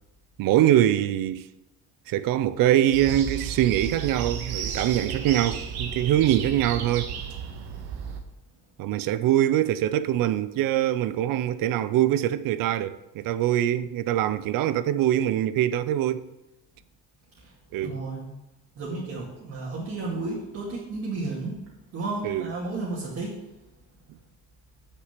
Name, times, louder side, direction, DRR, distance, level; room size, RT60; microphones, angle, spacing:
voice 1, 0.4-1.4 2.1-7.1 8.8-16.3 17.7-18.0 22.2-22.5, right 12 dB, 60° right, 0.6 m, -23 dB
sound 1, 2.9-8.2, right 7 dB, 90° right, 1.5 m, -33 dB
voice 2, 17.8-18.3 18.8-21.6 21.9-23.4, right 3 dB, 40° right, 2.4 m, -32 dB
8.2 x 6.8 x 7.4 m
cardioid pair, 165°, 37 cm